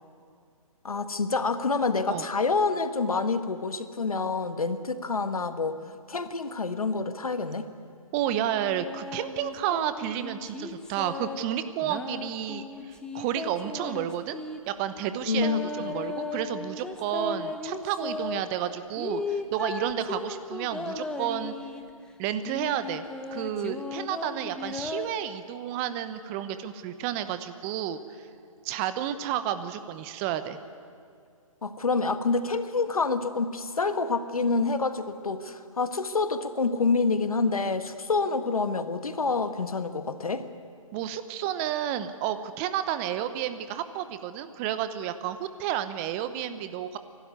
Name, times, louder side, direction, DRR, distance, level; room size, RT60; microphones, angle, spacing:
voice 1, 0.8-5.8 6.1-7.7 15.3-15.7 31.6-40.4, left 4 dB, 85° left, 10 dB, 1.5 m, -27 dB
voice 2, 8.1-14.4 14.7-21.5 22.2-23.0 23.3-28.0 28.6-30.6 40.9-47.0, right 10 dB, 25° right, 11 dB, 0.9 m, -31 dB
sound 1, 8.4-11.4 11.8-14.6 15.4-18.4 19.0-21.9 22.4-25.1, left 3 dB, 5° left, 0.9 m, -36 dB
28.0 x 12.5 x 9.7 m, 2.3 s
hypercardioid pair, 145°, 18 cm